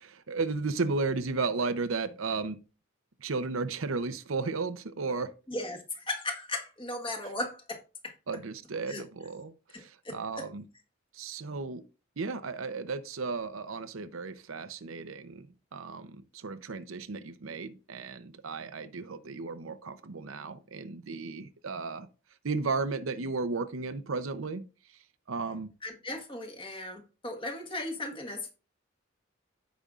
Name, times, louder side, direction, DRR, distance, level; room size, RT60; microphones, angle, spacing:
voice 1, 0.0-2.6 3.2-5.3 8.3-10.6 11.1-11.8 12.2-22.1 22.4-24.6 25.3-25.7, right 4 dB, 85° right, 0.7 m, -34 dB
voice 2, 5.5-8.1 8.9-9.0 9.7-10.5 25.8-28.5, left 2 dB, 25° left, 1.5 m, -37 dB
15.0 x 5.2 x 2.4 m
head